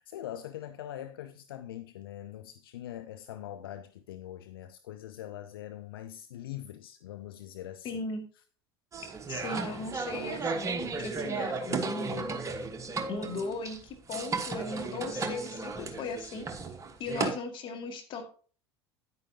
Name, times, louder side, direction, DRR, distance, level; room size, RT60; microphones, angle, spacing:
voice 1, 0.0-7.9, left 12 dB, 65° left, 0.5 m, -42 dB
voice 2, 7.8-8.2 9.3-12.3 13.1-16.5 17.0-18.2, left 3 dB, 40° left, 2.1 m, -37 dB
sound 1, 8.9-17.3, right 4 dB, 25° right, 1.3 m, -34 dB
9.9 x 9.4 x 2.8 m
figure-of-eight pair, 70°, 13 cm